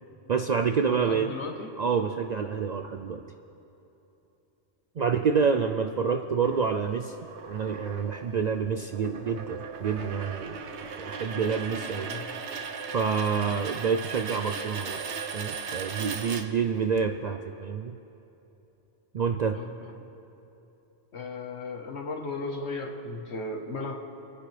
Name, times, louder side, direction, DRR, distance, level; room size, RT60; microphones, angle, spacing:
voice 1, 0.3-1.3 1.8-3.3 5.0-7.2 7.4-12.1 12.9-15.0 15.3-17.9 19.1-19.6, right 6 dB, 55° right, 6 dB, 0.4 m, -28 dB
voice 2, 0.8-1.7 5.0-5.1 11.3-11.5 11.8-12.3 13.5-13.6 19.5-20.1 21.1-24.1, left 3 dB, 70° left, 3 dB, 1.5 m, -36 dB
sound 1, 6.4-17.0, right 5 dB, 75° right, 1.1 m, -38 dB
28.5 x 9.9 x 3.3 m, 3.0 s
omnidirectional pair, 1.2 m